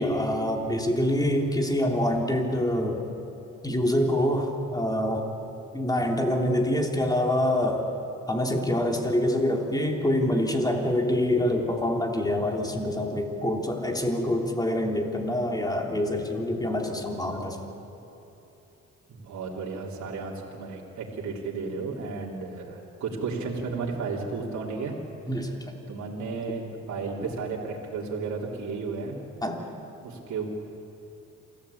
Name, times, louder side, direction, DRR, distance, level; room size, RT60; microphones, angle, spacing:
voice 1, 0.0-3.0 3.6-5.3 5.7-7.9 8.3-17.6 25.3-25.7 29.4-29.7, left 1 dB, 15° left, 1 dB, 3.3 m, -26 dB
voice 2, 19.1-24.9 25.9-29.2 30.0-30.5, right 4 dB, 65° right, -3 dB, 3.2 m, -33 dB
27.5 x 15.0 x 8.5 m, 2.9 s
cardioid pair, 90°, 30 cm